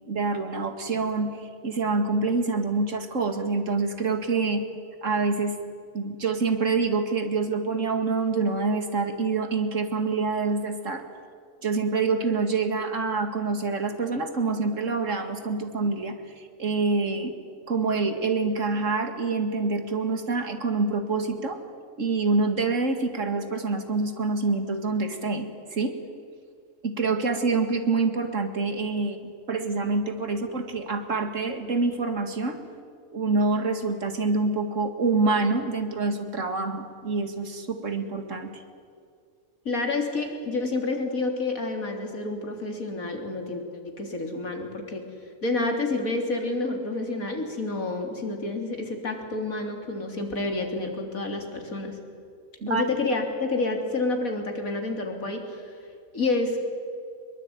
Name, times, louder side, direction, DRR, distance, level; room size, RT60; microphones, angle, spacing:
voice 1, 0.1-4.6 5.0-5.5 5.9-11.0 11.6-17.3 17.7-21.6 22.0-25.9 26.8-29.2 29.5-32.6 33.1-38.6 52.6-52.8, right 3 dB, 65° right, 6 dB, 2.5 m, -26 dB
voice 2, 39.7-45.0 45.4-52.0 52.7-55.8 56.1-56.6, left 3 dB, 85° left, 3 dB, 3.9 m, -29 dB
24.5 x 22.0 x 9.4 m, 2.3 s
omnidirectional pair, 1.4 m